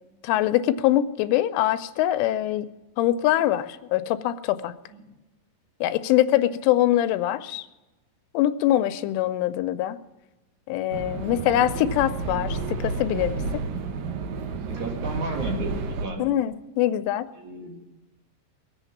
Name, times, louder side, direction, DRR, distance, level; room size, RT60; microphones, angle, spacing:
voice 1, 0.2-2.7 3.0-4.7 5.8-7.7 8.3-10.0 10.7-13.4 16.2-17.3, left 13 dB, 90° left, 11 dB, 3.1 m, -23 dB
sound 1, 10.9-16.1, right 4 dB, 75° right, 2.1 m, -31 dB
voice 2, 14.7-16.3 17.3-17.8, right 2 dB, 50° right, 1 dB, 2.6 m, -33 dB
21.0 x 8.2 x 7.1 m, 1.1 s
omnidirectional pair, 5.5 m